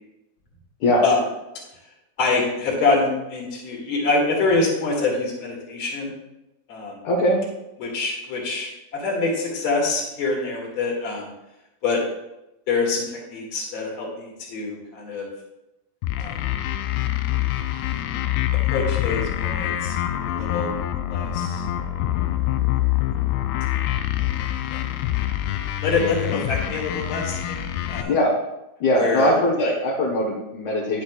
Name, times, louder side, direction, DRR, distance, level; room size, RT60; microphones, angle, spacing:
voice 1, 2.2-6.1 6.7-7.0 7.8-11.3 11.8-12.0 12.7-15.3 16.2-16.4 18.7-20.0 20.3-20.8 21.1-21.6 24.7-24.8 25.8-28.1 28.9-29.3 29.6-29.7, left 3 dB, 40° left, -3 dB, 2.4 m, -25 dB
voice 2, 7.0-7.4 28.1-28.3 28.8-31.0, equal, 60° left, -4 dB, 2.2 m, -21 dB
sound 1, 16.0-28.0, left 13 dB, 80° left, 2.3 m, -25 dB
10.5 x 8.3 x 2.4 m, 0.93 s
omnidirectional pair, 4.4 m